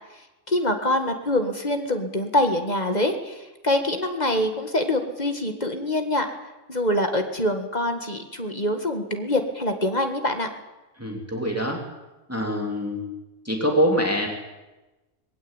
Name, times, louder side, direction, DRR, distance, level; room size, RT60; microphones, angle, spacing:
voice 1, 0.5-6.3 6.7-10.5, left 1 dB, 35° left, 6 dB, 2.1 m, -25 dB
voice 2, 11.0-11.8 12.3-13.0 13.4-14.3, equal, 10° right, 1 dB, 2.9 m, -24 dB
20.5 x 16.5 x 9.1 m, 1.1 s
omnidirectional pair, 1.3 m